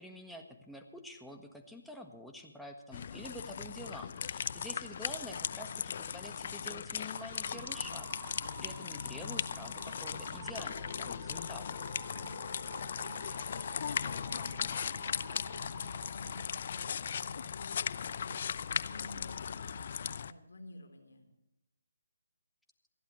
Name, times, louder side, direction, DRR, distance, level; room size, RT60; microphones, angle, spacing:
voice 1, 0.0-11.7, left 1 dB, ahead, 2 dB, 1.5 m, -48 dB
sound 1, 2.9-20.3, left 7 dB, 50° left, 0.6 m, -38 dB
sound 2, 7.1-16.4, right 11 dB, 30° right, 0.7 m, -52 dB
voice 2, 12.1-21.3, left 1 dB, 75° left, 6 dB, 3.7 m, -52 dB
28.0 x 11.0 x 3.2 m, 0.93 s
figure-of-eight pair, 155°, 0 cm